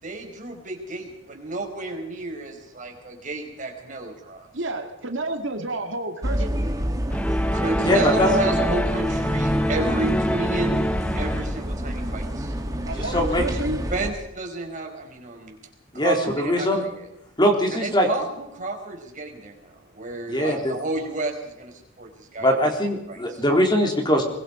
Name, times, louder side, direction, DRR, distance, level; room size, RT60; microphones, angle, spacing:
voice 1, 0.0-4.5 7.5-12.5 13.9-15.6 15.9-17.1 17.7-22.7 23.1-23.4, right 2 dB, 40° right, 2 dB, 4.8 m, -31 dB
voice 2, 4.5-6.6 12.9-13.8, right 2 dB, 70° right, 4 dB, 2.4 m, -30 dB
sound 1, 6.2-14.1, equal, 20° right, 1.9 m, -28 dB
sound 2, 7.1-11.7, equal, 5° left, 0.7 m, -25 dB
voice 3, 7.8-8.3 12.9-13.4 15.9-16.8 17.4-18.1 20.3-20.7 22.4-24.2, equal, 25° left, 2 dB, 3.8 m, -21 dB
23.0 x 22.0 x 5.2 m, 0.83 s
head